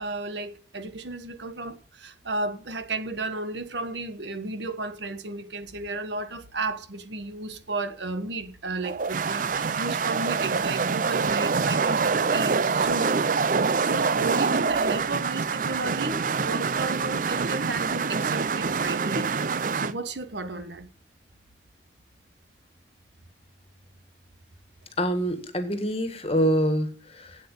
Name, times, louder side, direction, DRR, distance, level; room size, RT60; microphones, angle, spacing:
voice 1, 0.0-13.2 13.8-19.3 19.7-20.9, right 3 dB, 75° right, 1.3 m, -33 dB
sound 1, 8.8-19.9, right 5 dB, 45° right, 0.5 m, -25 dB
voice 2, 25.0-27.4, equal, 35° left, 1.8 m, -25 dB
8.6 x 7.9 x 8.2 m
head